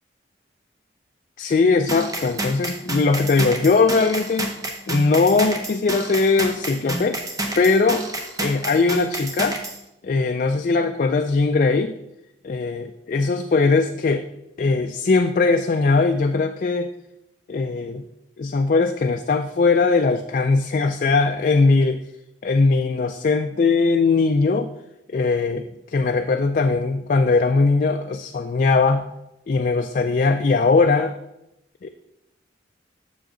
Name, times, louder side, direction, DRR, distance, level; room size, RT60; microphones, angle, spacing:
voice 1, 1.4-4.5 4.9-8.0 8.4-9.6 10.0-11.9 12.4-14.3 14.6-16.9 17.5-18.0 18.4-22.0 22.4-24.7 25.1-29.1 29.5-31.1 31.8-31.9, left 4 dB, 45° left, 6 dB, 0.3 m, -20 dB
sound 1, 1.9-9.8, right 2 dB, 20° right, 0.8 m, -29 dB
7.6 x 6.4 x 3.8 m, 0.87 s
head